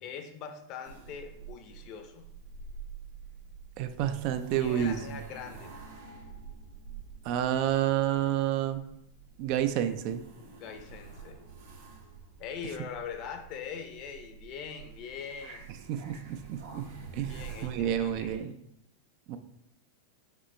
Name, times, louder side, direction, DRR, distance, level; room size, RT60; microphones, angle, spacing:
voice 1, 0.0-2.2 4.6-5.7 10.5-11.5 12.4-15.8 17.2-18.5, left 6 dB, 45° left, 6 dB, 0.6 m, -42 dB
sound 1, 0.8-18.4, right 5 dB, 75° right, 1.3 m, -48 dB
voice 2, 3.8-5.0 7.2-8.8 9.4-10.2 15.9-18.6 19.3-19.4, right 11 dB, 50° right, 9 dB, 0.4 m, -29 dB
5.1 x 3.0 x 3.2 m, 0.78 s
supercardioid pair, 130°, 0 cm